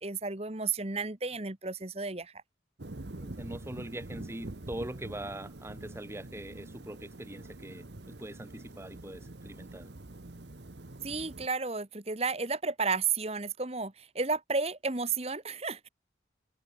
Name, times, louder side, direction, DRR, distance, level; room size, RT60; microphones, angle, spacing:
voice 1, 0.0-2.3 11.0-15.9, right 4 dB, 35° right, 1.5 m, -32 dB
sound 1, 2.8-11.5, right 2 dB, 65° right, 1.2 m, -45 dB
voice 2, 3.2-9.9, right 1 dB, 15° right, 1.1 m, -42 dB
head